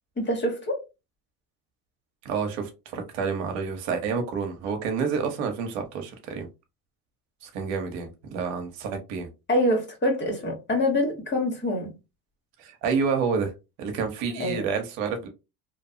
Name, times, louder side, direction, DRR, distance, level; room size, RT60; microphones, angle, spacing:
voice 1, 0.2-0.8 9.5-11.9 14.3-14.6, left 1 dB, 25° left, 1.4 m, -25 dB
voice 2, 2.2-6.5 7.4-9.3 12.6-13.5 13.8-15.3, right 5 dB, 70° right, 0.9 m, -29 dB
2.7 x 2.2 x 2.7 m
hypercardioid pair, 80°, 46 cm